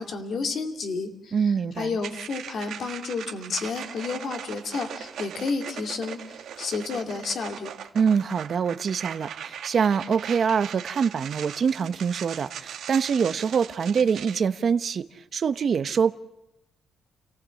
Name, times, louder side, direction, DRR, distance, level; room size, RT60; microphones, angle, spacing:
voice 1, 0.0-1.4 1.8-7.7, left 4 dB, 60° left, 2.4 m, -31 dB
voice 2, 1.3-2.0 7.9-15.1 15.3-16.1, right 6 dB, 55° right, 0.9 m, -24 dB
sound 1, 2.0-14.4, right 9 dB, 80° right, 1.7 m, -39 dB
29.5 x 16.0 x 7.6 m
cardioid pair, 90°, 0 cm